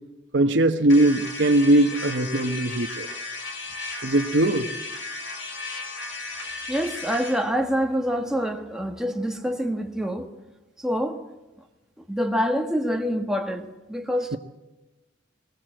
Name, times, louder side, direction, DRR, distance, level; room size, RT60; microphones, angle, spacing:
voice 1, 0.3-3.1 4.0-4.7, right 1 dB, 75° right, 1.1 m, -20 dB
sound 1, 0.9-7.4, left 3 dB, 85° left, 6.0 m, -35 dB
voice 2, 6.7-10.3 10.8-11.2 12.0-14.4, equal, 5° right, 1.5 m, -26 dB
21.5 x 20.0 x 7.8 m
head